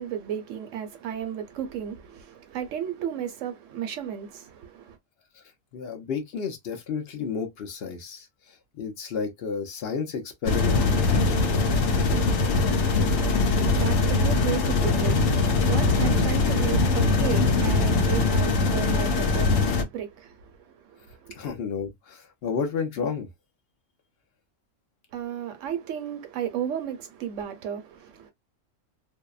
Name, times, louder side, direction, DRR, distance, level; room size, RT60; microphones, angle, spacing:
voice 1, 0.0-5.0 13.2-21.4 25.1-28.3, right 9 dB, 75° right, 1.0 m, -34 dB
voice 2, 5.7-8.3 8.7-11.4 21.3-23.3, left 5 dB, 55° left, 0.8 m, -32 dB
sound 1, 10.5-19.8, left 3 dB, 80° left, 1.0 m, -22 dB
2.6 x 2.1 x 2.3 m
omnidirectional pair, 1.3 m